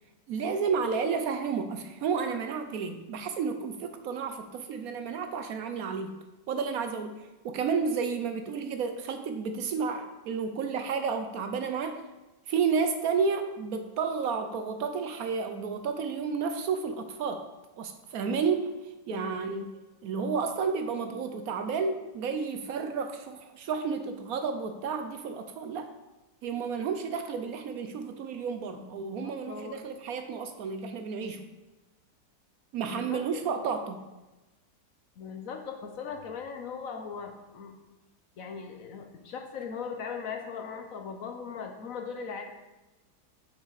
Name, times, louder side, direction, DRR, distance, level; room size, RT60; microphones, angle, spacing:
voice 1, 0.3-6.1 6.5-12.0 12.5-17.4 17.8-19.7 20.0-25.9 26.4-31.5 32.7-34.0, right 5 dB, 70° right, 7 dB, 0.9 m, -31 dB
voice 2, 19.1-19.5 28.8-29.9 32.8-33.5 35.2-37.7 38.4-42.4, left 6 dB, 60° left, 4 dB, 1.1 m, -39 dB
6.5 x 6.1 x 4.7 m, 1.1 s
omnidirectional pair, 1.8 m